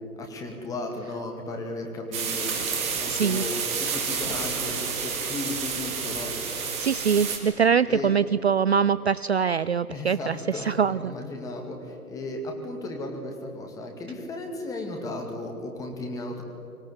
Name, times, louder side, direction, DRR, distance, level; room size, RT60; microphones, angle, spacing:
voice 1, 0.2-2.7 2.9-6.7 7.9-8.1 9.9-16.4, left 2 dB, 5° left, 2 dB, 2.1 m, -35 dB
sound 1, 2.1-7.4, right 6 dB, 15° right, 2.3 m, -30 dB
voice 2, 3.1-3.4 6.5-11.1, right 6 dB, 50° right, 17 dB, 0.5 m, -24 dB
25.0 x 17.0 x 9.6 m, 2.9 s
figure-of-eight pair, 140°, 44 cm